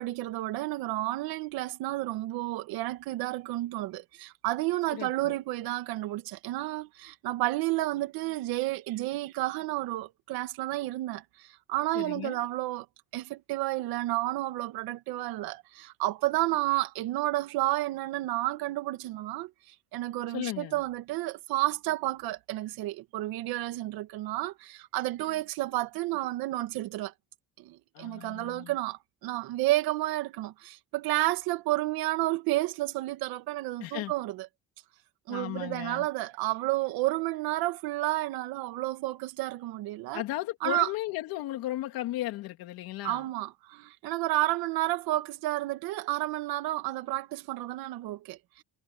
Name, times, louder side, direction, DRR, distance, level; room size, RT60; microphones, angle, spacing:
voice 1, 0.0-12.9 13.1-27.1 27.6-34.5 35.3-40.2 40.6-40.9 43.0-48.6, right 17 dB, 90° right, 2.3 m, -31 dB
voice 2, 4.9-5.4 11.9-12.4 20.3-20.8 27.9-28.7 33.8-34.1 35.3-36.1 40.1-43.3, left 15 dB, 80° left, 2.9 m, -35 dB
cardioid pair, 145°, 35 cm